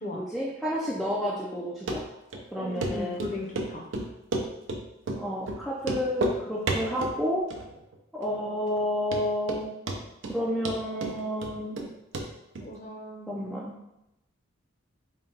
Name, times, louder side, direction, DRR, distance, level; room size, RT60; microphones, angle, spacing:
voice 1, 0.1-2.1 2.5-3.4 5.1-7.5 8.1-9.7 10.3-11.8 13.3-13.8, equal, ahead, -5 dB, 0.3 m, -30 dB
Run, 1.9-2.0 2.3-2.4 2.8-2.9 3.2-3.7 3.9-4.8 5.1-5.2 5.5-5.6 5.8-6.4 6.7-7.2 7.5-8.0 8.2-8.3 8.8-8.9 9.1-9.6 9.9-10.4 10.7-11.9 12.1-12.3 12.6-12.7, right 2 dB, 65° right, 0.5 m, -30 dB
voice 2, 2.6-3.9 12.6-13.6, left 1 dB, 35° left, -1 dB, 0.7 m, -37 dB
4.0 x 2.2 x 3.8 m, 0.87 s
head